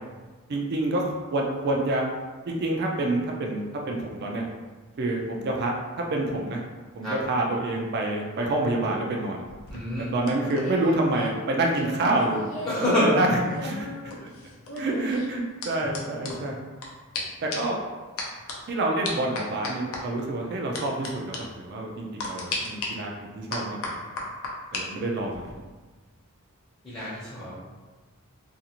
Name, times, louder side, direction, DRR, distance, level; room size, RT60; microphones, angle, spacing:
voice 1, 0.5-1.0 1.3-2.0 2.5-4.4 5.0-6.6 6.9-9.4 10.1-12.7 13.0-13.9 14.2-14.3 14.8-16.5 17.4-17.8 18.7-23.9 24.7-25.5, right 2 dB, 45° right, 0 dB, 0.4 m, -27 dB
sound 1, 9.5-12.9 13.1-16.9 17.1-17.2 17.5-17.8 18.2-18.5 19.0-20.0 20.7-21.1 21.3-21.4 22.2-22.9 23.5-24.8 25.2-25.5, left 3 dB, 65° left, 0.5 m, -35 dB
voice 2, 9.7-10.1 12.7-13.1 26.8-27.5, left 1 dB, 20° left, -10 dB, 0.7 m, -27 dB
2.5 x 2.4 x 2.8 m, 1.3 s
head